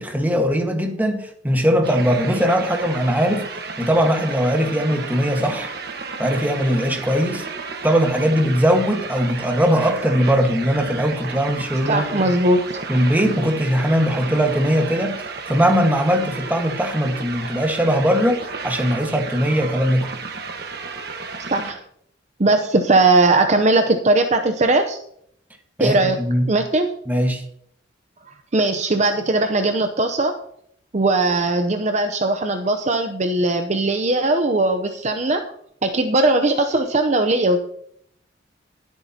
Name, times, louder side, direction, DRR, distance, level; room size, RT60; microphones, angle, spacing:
voice 1, 0.0-3.5 3.8-5.7 6.2-7.4 7.8-12.3 12.9-15.2 15.5-20.1 25.8-26.5 27.1-27.4, equal, 10° right, 1.4 m, -20 dB
sound 1, 1.8-21.7, right 4 dB, 60° right, 1.4 m, -33 dB
voice 2, 11.9-12.6 21.5-21.8 22.4-25.0 25.8-26.2 26.5-26.9 28.5-30.3 30.9-35.4 35.8-37.6, right 2 dB, 40° right, 0.7 m, -19 dB
21.0 x 8.3 x 2.8 m
head